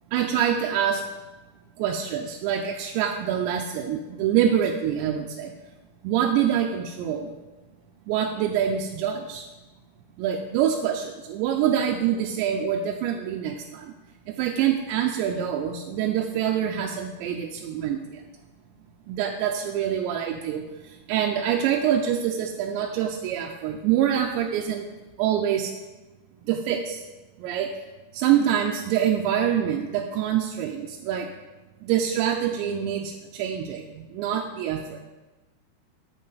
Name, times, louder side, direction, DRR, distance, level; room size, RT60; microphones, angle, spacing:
voice 1, 0.1-1.0 1.8-5.5 6.0-7.4 8.1-9.4 10.2-13.9 14.4-18.2 19.1-20.6 21.1-24.9 25.2-25.7 26.5-27.0 27.4-27.7 28.1-31.3 31.8-35.0, right 9 dB, 85° right, 1 dB, 2.9 m, -25 dB
13.0 x 6.5 x 4.0 m, 1.1 s
omnidirectional pair, 5.1 m